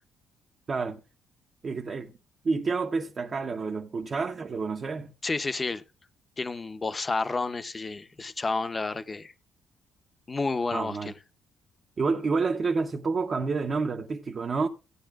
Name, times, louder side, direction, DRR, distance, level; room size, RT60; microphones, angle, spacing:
voice 1, 0.7-1.0 1.6-2.1 2.4-5.1 10.7-11.1 12.0-14.7, right 4 dB, 30° right, 0.7 m, -29 dB
voice 2, 5.2-5.8 6.4-9.3 10.3-11.1, left 3 dB, 20° left, 0.7 m, -30 dB
16.5 x 9.7 x 2.4 m
cardioid pair, 165°, 0 cm